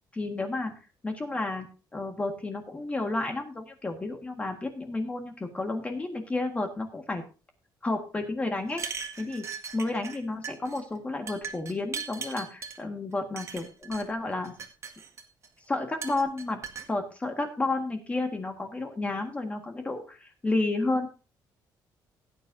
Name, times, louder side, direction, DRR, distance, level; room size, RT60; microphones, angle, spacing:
voice 1, 0.2-0.7 1.0-1.7 1.9-7.2 7.8-9.5 9.7-14.5 15.7-16.6 16.9-21.1, left 2 dB, 15° left, 4 dB, 1.6 m, -31 dB
sound 1, 8.7-10.2 10.4-10.8 11.3-12.8 13.4-14.0 14.4-15.5 16.0-16.9, right 6 dB, 35° right, 1.8 m, -38 dB
16.5 x 9.6 x 2.7 m, 0.33 s
cardioid pair, 155°, 8 cm